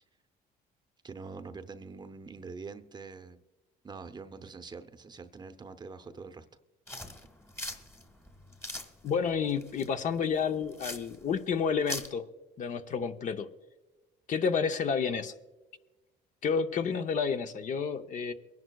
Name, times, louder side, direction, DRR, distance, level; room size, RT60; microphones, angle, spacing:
voice 1, 1.0-3.4 3.8-6.5, right 4 dB, 25° right, 9 dB, 0.7 m, -44 dB
sound 1, 6.9-12.1, left 1 dB, 15° left, 1.5 m, -42 dB
voice 2, 9.0-12.3 12.6-13.5 14.3-15.3 16.4-18.3, left 6 dB, 50° left, 8 dB, 0.7 m, -30 dB
23.0 x 11.0 x 2.3 m, 1.1 s
cardioid pair, 110°, 17 cm